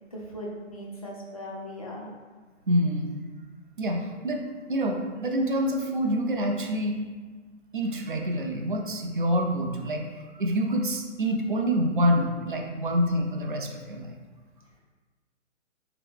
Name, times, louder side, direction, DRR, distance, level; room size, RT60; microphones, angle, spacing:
voice 1, 0.1-2.1, equal, 30° left, -4 dB, 0.5 m, -38 dB
voice 2, 2.7-3.2 3.8-7.0 7.7-14.2, equal, 45° right, 2 dB, 0.4 m, -27 dB
3.5 x 2.9 x 3.4 m, 1.4 s
hypercardioid pair, 175°, 38 cm